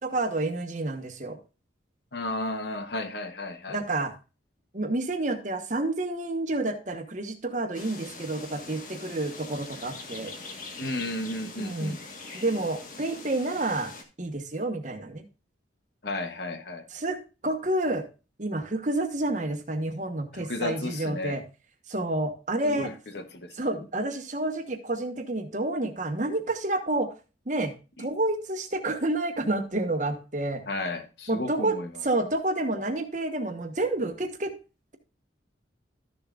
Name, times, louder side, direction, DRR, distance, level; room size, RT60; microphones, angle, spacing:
voice 1, 0.0-1.4 3.7-4.1 4.7-10.3 11.6-12.0 12.3-13.9 14.2-15.2 16.9-18.0 18.4-21.4 21.9-22.9 23.6-27.1 27.5-27.7 28.0-30.6 31.3-31.8 32.0-34.5, right 2 dB, 40° right, 1.2 m, -29 dB
voice 2, 2.1-3.8 10.8-12.0 16.0-16.8 20.3-21.4 22.7-23.6 28.0-28.1 30.7-31.9, left 2 dB, 60° left, 1.0 m, -33 dB
sound 1, 7.7-14.0, left 3 dB, 45° left, 1.5 m, -43 dB
13.0 x 6.9 x 2.5 m
head